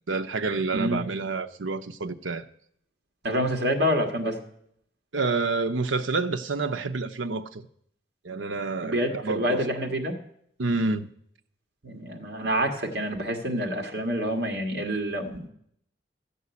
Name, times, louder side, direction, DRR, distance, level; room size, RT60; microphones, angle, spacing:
voice 1, 0.1-2.4 5.1-7.6 8.2-9.6 10.6-11.1, right 3 dB, 85° right, 0.8 m, -28 dB
voice 2, 3.2-4.4 8.8-10.2 11.8-15.5, equal, 55° right, 1.9 m, -27 dB
14.0 x 5.5 x 8.3 m
head